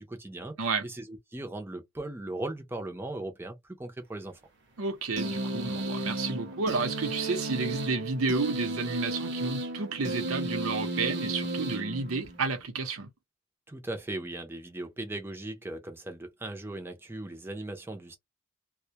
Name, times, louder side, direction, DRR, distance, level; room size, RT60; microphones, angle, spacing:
voice 1, 0.0-4.4 13.7-18.2, right 2 dB, 10° right, 0.5 m, -38 dB
voice 2, 4.8-13.1, right 4 dB, 90° right, 0.7 m, -31 dB
sound 1, 5.2-12.6, right 2 dB, 55° right, 0.8 m, -34 dB
2.2 x 2.1 x 2.7 m
head